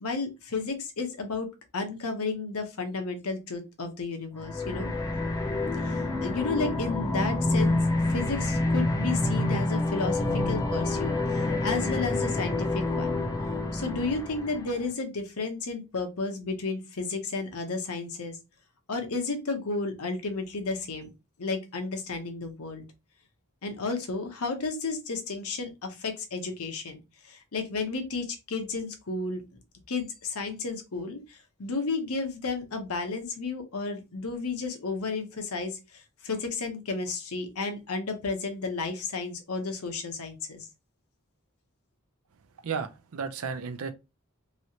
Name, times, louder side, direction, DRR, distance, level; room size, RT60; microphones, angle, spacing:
voice 1, 0.0-1.5 1.7-4.9 5.8-7.8 8.1-13.2 13.7-18.4 18.9-21.1 21.4-22.8 23.6-27.0 27.2-29.4 29.9-40.7, left 3 dB, 85° left, 0.9 m, -32 dB
sound 1, 4.4-14.9, left 2 dB, 15° left, 0.4 m, -28 dB
voice 2, 42.6-43.9, right 6 dB, 75° right, 0.5 m, -33 dB
3.1 x 2.8 x 2.7 m
head